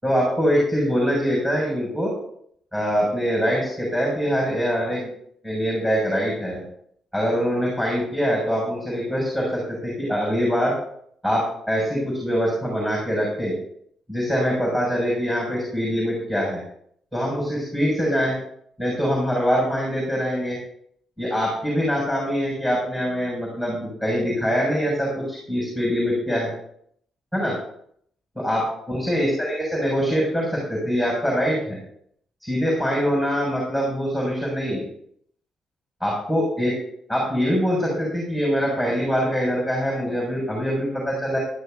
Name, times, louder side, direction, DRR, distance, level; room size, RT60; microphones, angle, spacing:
voice 1, 0.0-2.1 2.7-5.1 5.4-6.6 7.1-10.8 11.2-13.6 14.1-16.6 17.1-18.3 18.8-20.6 21.2-26.5 27.3-27.6 28.4-28.6 28.9-31.8 32.4-34.8 36.0-36.7 37.1-41.4, equal, 10° right, -3 dB, 6.6 m, -23 dB
17.5 x 13.5 x 2.7 m, 0.68 s
cardioid pair, 90°, 0 cm